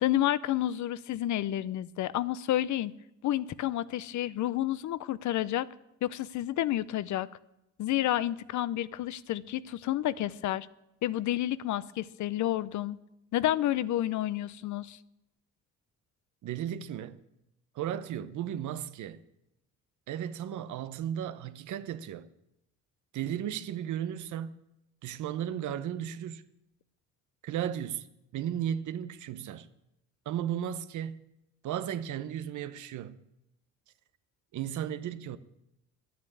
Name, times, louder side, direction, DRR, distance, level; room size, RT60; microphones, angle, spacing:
voice 1, 0.0-2.9 3.2-5.7 6.0-7.3 7.8-10.7 11.0-13.0 13.3-15.0, left 13 dB, 70° left, 0.6 m, -30 dB
voice 2, 16.4-17.2 17.7-19.2 20.1-22.3 23.1-24.5 25.0-26.4 27.4-28.1 28.3-29.7 30.3-31.2 31.6-33.2 34.5-35.4, right 10 dB, 75° right, 0.8 m, -35 dB
11.0 x 9.5 x 8.6 m
cardioid pair, 90°, 30 cm